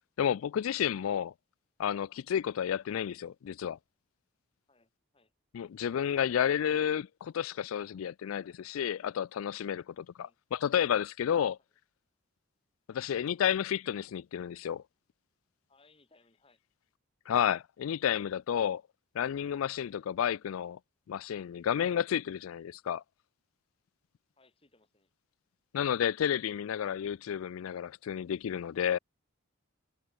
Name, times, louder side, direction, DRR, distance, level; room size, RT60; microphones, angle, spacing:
voice 1, 0.2-1.3 1.8-3.8 5.5-11.6 12.9-14.8 17.3-18.8 19.1-20.8 21.1-23.0 25.7-29.0, left 9 dB, 85° left, 0.3 m, -31 dB
voice 2, 4.7-5.3 7.8-8.1 10.1-10.4 12.9-13.1 15.7-16.6 20.0-20.1 22.3-22.5 24.4-25.1, left 3 dB, 25° left, 5.6 m, -67 dB
head